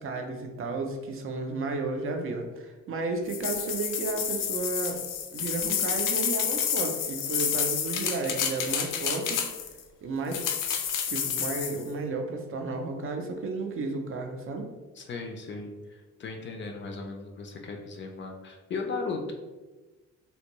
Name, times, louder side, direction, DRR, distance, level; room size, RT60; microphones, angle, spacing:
voice 1, 0.0-5.0 5.3-9.5 10.0-10.4 11.1-14.7, right 3 dB, 45° right, 4 dB, 0.4 m, -33 dB
sound 1, 3.3-9.8 10.3-11.8, left 8 dB, 90° left, 0.5 m, -29 dB
voice 2, 15.0-15.7 16.2-19.3, left 4 dB, 40° left, 2 dB, 0.4 m, -36 dB
3.4 x 2.6 x 2.9 m, 1.2 s
cardioid pair, 170°, 31 cm